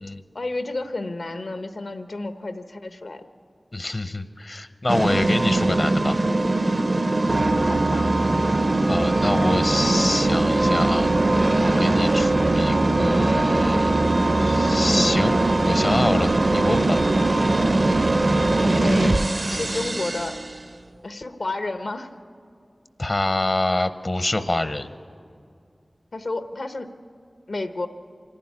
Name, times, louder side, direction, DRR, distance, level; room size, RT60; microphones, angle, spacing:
voice 1, 0.3-3.2 7.7-8.1 9.4-9.7 11.7-12.0 18.6-19.2 19.5-20.4 21.0-22.1 26.1-26.9 27.5-27.9, left 2 dB, 80° left, 8 dB, 1.0 m, -31 dB
voice 2, 3.7-6.2 8.9-11.1 11.6-14.1 14.4-15.4 15.6-17.0 23.0-24.9, left 2 dB, 50° left, 11 dB, 0.7 m, -26 dB
sound 1, 4.9-20.6, right 2 dB, 50° right, 0.5 m, -21 dB
26.0 x 12.0 x 9.7 m, 2.4 s
wide cardioid pair, 70°, 0 cm